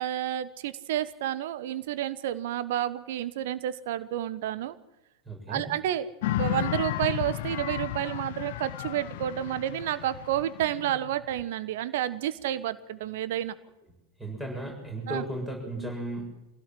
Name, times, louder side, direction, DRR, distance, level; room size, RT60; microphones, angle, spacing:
voice 1, 0.0-4.8 5.5-13.5 15.1-15.2, right 12 dB, 55° right, 14 dB, 1.2 m, -30 dB
voice 2, 5.2-5.6 14.2-16.2, right 1 dB, 5° right, 0 dB, 6.8 m, -35 dB
sound 1, 6.2-11.4, left 15 dB, 50° left, 0.7 m, -33 dB
24.5 x 16.5 x 7.7 m, 0.91 s
figure-of-eight pair, 90°, 0 cm